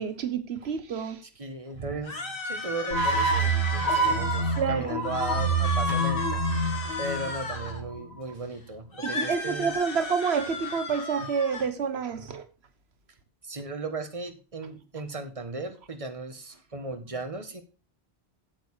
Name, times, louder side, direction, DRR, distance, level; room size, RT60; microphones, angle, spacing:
voice 1, 0.0-1.2 4.6-5.0 9.0-12.4, right 6 dB, 80° right, 1.2 m, -28 dB
voice 2, 1.4-9.7 11.6-11.7 13.4-17.6, right 2 dB, 35° right, 1.5 m, -36 dB
sound 1, 2.0-4.6 5.0-7.8 8.9-11.7, left 3 dB, 60° left, 1.9 m, -34 dB
sound 2, 2.9-8.1, right 3 dB, 85° left, 2.7 m, -27 dB
9.1 x 7.9 x 4.8 m
omnidirectional pair, 1.1 m